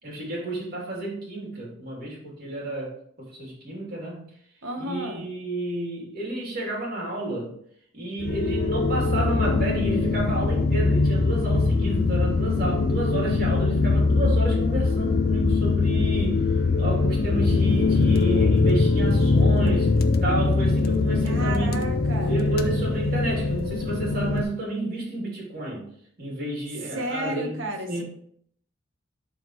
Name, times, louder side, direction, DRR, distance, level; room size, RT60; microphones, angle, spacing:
voice 1, 0.0-4.3 4.8-7.5 7.9-16.5 16.8-19.9 20.2-25.9 26.2-27.6 27.9-28.0, right 2 dB, 50° right, -3 dB, 3.0 m, -31 dB
voice 2, 4.6-5.3 21.2-22.4 26.9-28.0, right 1 dB, 80° right, 3 dB, 1.2 m, -32 dB
sound 1, 8.2-24.4, left 3 dB, 50° left, 0.5 m, -22 dB
11.0 x 4.1 x 3.1 m, 0.65 s
head